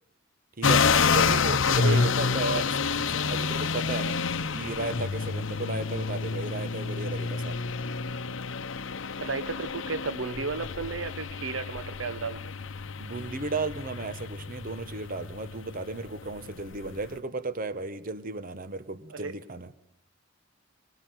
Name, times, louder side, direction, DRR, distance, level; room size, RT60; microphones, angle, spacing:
sound 1, 0.6-17.1, left 5 dB, 65° left, 0.8 m, -29 dB
voice 1, 0.6-4.2 4.5-7.7 13.0-19.7, right 3 dB, 45° right, 1.0 m, -35 dB
voice 2, 1.8-2.3 9.2-12.5 19.1-19.3, right 4 dB, 65° right, 0.9 m, -33 dB
22.0 x 20.0 x 9.1 m
head